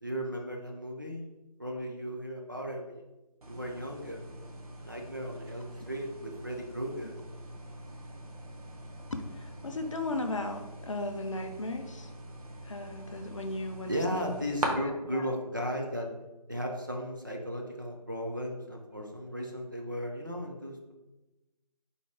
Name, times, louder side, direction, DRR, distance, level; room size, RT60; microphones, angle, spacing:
voice 1, 0.0-1.3 1.6-3.0 3.5-4.3 4.8-7.2 13.9-16.1 16.5-20.9, equal, 30° right, -1 dB, 0.4 m, -36 dB
sound 1, 3.4-14.7, right 1 dB, 60° right, 0.8 m, -43 dB
voice 2, 9.1-12.1 12.6-14.2 14.8-15.3, left 2 dB, 50° left, 6 dB, 0.4 m, -36 dB
3.9 x 2.1 x 4.4 m, 1.0 s
figure-of-eight pair, 170°, 21 cm